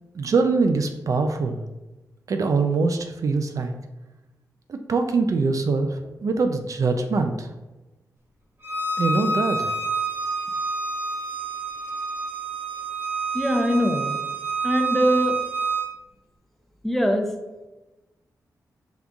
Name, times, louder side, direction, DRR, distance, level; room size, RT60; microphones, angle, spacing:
voice 1, 0.1-1.6 2.3-3.7 4.7-7.5 9.0-9.7, right 4 dB, 55° right, 6 dB, 0.4 m, -23 dB
Bowed string instrument, 8.6-15.9, right 4 dB, 35° right, 1.2 m, -28 dB
voice 2, 13.3-14.2 14.6-15.4 16.8-17.3, equal, 5° left, 3 dB, 0.6 m, -22 dB
5.3 x 2.4 x 3.5 m, 1.1 s
cardioid pair, 80°, 7 cm